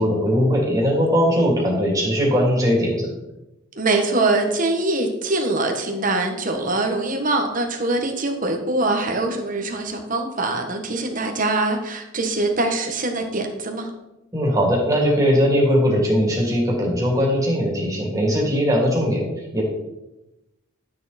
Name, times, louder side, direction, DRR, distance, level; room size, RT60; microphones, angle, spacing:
voice 1, 0.0-3.1 14.3-19.3 19.5-19.6, equal, 15° right, -2 dB, 2.8 m, -19 dB
voice 2, 3.7-13.9, right 2 dB, 40° right, 4 dB, 1.5 m, -23 dB
12.0 x 6.8 x 4.3 m, 0.95 s
head